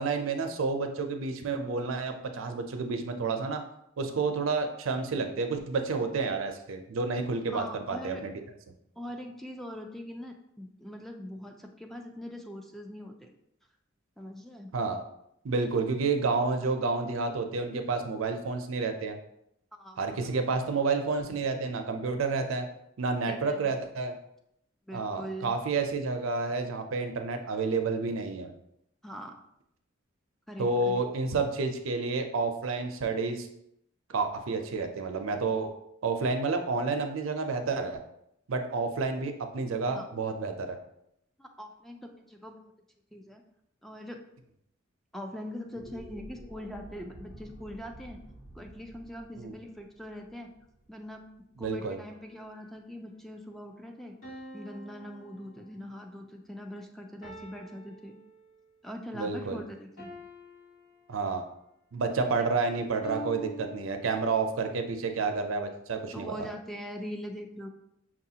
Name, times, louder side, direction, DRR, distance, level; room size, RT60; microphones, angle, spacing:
voice 1, 0.0-3.6 4.0-8.3 14.7-15.0 15.4-19.2 20.0-22.7 23.0-24.2 24.9-28.5 30.6-33.5 34.1-35.7 36.0-38.0 38.5-40.8 49.4-49.5 51.6-52.0 59.1-59.6 61.1-61.4 61.9-66.3, right 4 dB, 85° right, 6 dB, 0.5 m, -30 dB
voice 2, 7.5-8.2 9.0-13.3 14.2-14.7 15.6-15.7 19.7-20.3 23.3-23.8 24.9-25.5 29.0-29.4 30.5-31.0 39.9-40.1 41.4-42.6 43.1-43.4 43.8-44.2 45.1-48.2 48.5-50.5 50.9-51.3 51.6-54.2 54.5-58.2 58.8-60.1 66.1-67.7, equal, ahead, 3 dB, 0.3 m, -42 dB
sound 1, 45.7-52.0, right 1 dB, 60° left, 1.1 m, -50 dB
sound 2, 52.0-52.9 54.2-56.1 57.2-58.8 60.0-61.6 63.0-64.7, equal, 90° left, 1.4 m, -47 dB
5.9 x 2.4 x 2.8 m, 0.77 s
head